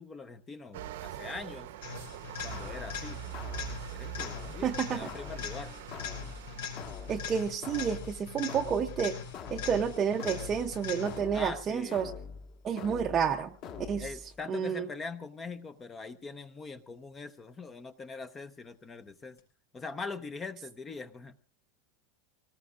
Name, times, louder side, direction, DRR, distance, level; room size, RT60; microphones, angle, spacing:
voice 1, 0.0-1.7 2.4-3.3 3.9-5.7 11.3-12.2 14.0-19.4 19.7-21.3, left 4 dB, 15° left, 12 dB, 0.7 m, -42 dB
sound 1, 0.7-7.5, right 13 dB, 70° right, 1.0 m, -44 dB
sound 2, 1.8-11.4 19.4-19.5, left 7 dB, 90° left, 5.6 m, -42 dB
sound 3, 2.5-14.4, left 6 dB, 40° left, 1.8 m, -45 dB
voice 2, 4.6-5.1 7.1-9.2 9.5-12.1 12.6-14.1 14.5-14.9, right 7 dB, 20° right, 3 dB, 0.7 m, -30 dB
25.5 x 19.0 x 2.5 m, 0.36 s
supercardioid pair, 165°, 0 cm